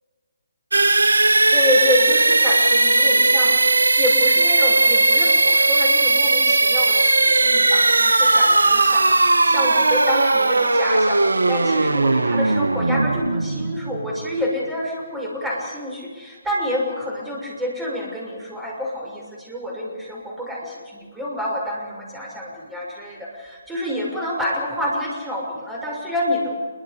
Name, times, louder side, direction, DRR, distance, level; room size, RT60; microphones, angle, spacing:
sound 1, 0.7-14.4, right 2 dB, 80° right, 1.0 m, -17 dB
voice 1, 1.5-3.6 4.0-9.1 9.4-26.5, left 1 dB, 5° right, -2 dB, 6.4 m, -27 dB
28.0 x 23.5 x 5.3 m, 1.5 s
figure-of-eight pair, 140°, 0 cm